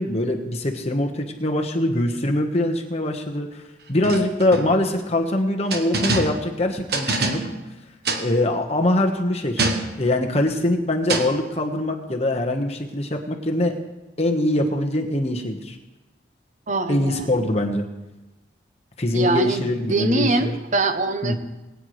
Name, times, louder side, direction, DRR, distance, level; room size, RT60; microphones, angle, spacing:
voice 1, 0.0-3.5 3.9-7.4 8.2-9.7 10.0-13.7 14.2-15.8 16.9-17.8 19.0-20.5 21.2-21.3, left 1 dB, 35° left, 3 dB, 1.2 m, -23 dB
sound 1, 4.0-4.9 5.7-6.6 6.9-7.7 8.1-8.3 9.6-10.1 11.1-11.4, right 3 dB, 60° right, 1.2 m, -25 dB
voice 2, 16.7-17.3 19.1-21.3, right 2 dB, 40° right, 9 dB, 0.7 m, -23 dB
21.0 x 9.4 x 3.2 m, 1.1 s
head